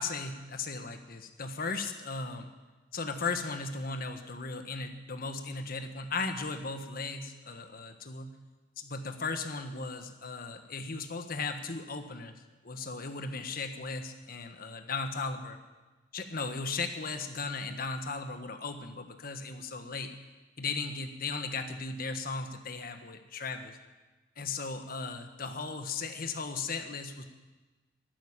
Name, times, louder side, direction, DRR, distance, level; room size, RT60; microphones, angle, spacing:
voice 1, 0.0-2.5 2.9-8.3 8.8-12.3 12.6-15.6 16.1-20.1 20.6-23.8 24.4-27.2, left 4 dB, 55° left, 7 dB, 1.4 m, -36 dB
12.0 x 9.7 x 9.9 m, 1.2 s
head